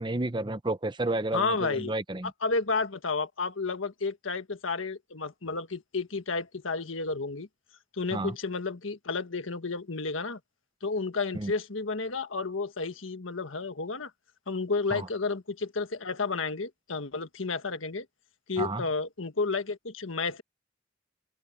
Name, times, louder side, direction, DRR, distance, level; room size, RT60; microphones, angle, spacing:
voice 1, 0.0-2.3 8.1-8.3 11.3-11.5 14.9-15.1 18.6-18.8, right 2 dB, 25° right, 0.8 m, -31 dB
voice 2, 1.3-1.9 2.4-7.5 8.0-10.4 10.8-14.1 14.5-18.0 18.5-20.4, left 4 dB, 90° left, 1.5 m, -31 dB
open air
head